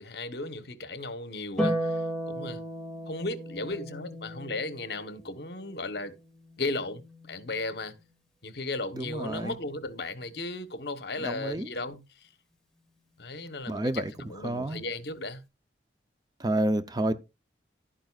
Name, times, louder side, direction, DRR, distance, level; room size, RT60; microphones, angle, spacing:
voice 1, 0.0-2.6 3.1-6.2 6.6-8.0 8.4-12.3 13.2-15.4, left 2 dB, 60° left, 1.1 m, -36 dB
Harp, 1.6-8.1 9.7-10.7, right 1 dB, 5° left, 2.3 m, -36 dB
voice 2, 9.0-9.5 11.2-11.7 13.7-14.1 14.4-14.8 16.4-17.1, right 1 dB, 20° right, 0.6 m, -29 dB
11.5 x 9.1 x 2.4 m
head